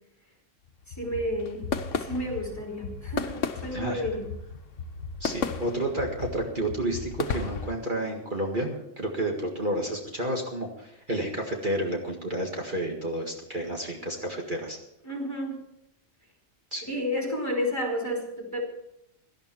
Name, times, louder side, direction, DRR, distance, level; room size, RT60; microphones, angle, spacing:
sound 1, 0.7-7.8, left 5 dB, 75° left, 1.3 m, -34 dB
voice 1, 1.0-1.7 2.0-4.3 15.0-15.6 16.9-18.6, equal, 15° left, 0 dB, 3.2 m, -31 dB
voice 2, 3.7-4.1 5.2-14.8 16.7-16.9, right 1 dB, 40° right, 0 dB, 2.0 m, -31 dB
17.5 x 12.5 x 4.5 m, 0.78 s
omnidirectional pair, 1.3 m